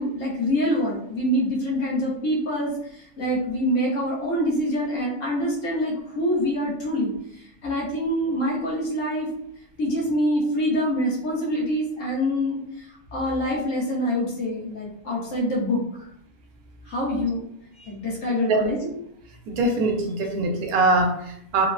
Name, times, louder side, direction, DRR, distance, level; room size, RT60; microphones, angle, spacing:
voice 1, 0.0-7.1 7.6-9.3 9.8-12.6 13.1-15.8 16.9-17.4 17.8-18.8, equal, 65° left, -4 dB, 1.2 m, -25 dB
voice 2, 18.5-18.9 19.5-21.7, right 2 dB, 90° right, 3 dB, 1.1 m, -23 dB
3.2 x 2.1 x 2.4 m, 0.72 s
omnidirectional pair, 1.5 m